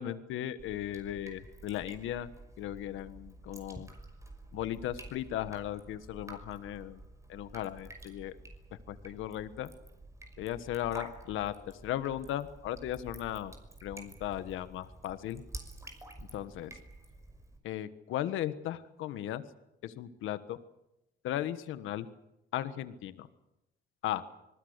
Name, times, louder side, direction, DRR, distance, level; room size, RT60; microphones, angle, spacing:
voice 1, 0.0-2.3 2.6-3.9 4.5-7.0 7.3-8.4 8.9-9.7 10.4-11.5 11.8-13.5 13.8-15.4 16.3-16.7 17.6-19.4 19.8-20.6 21.2-22.1 22.5-23.3 24.0-24.2, left 12 dB, 90° left, 12 dB, 1.4 m, -36 dB
Drip, 0.6-17.6, right 1 dB, 15° right, 5.8 m, -50 dB
26.0 x 20.5 x 8.1 m, 0.85 s
cardioid pair, 90°, 20 cm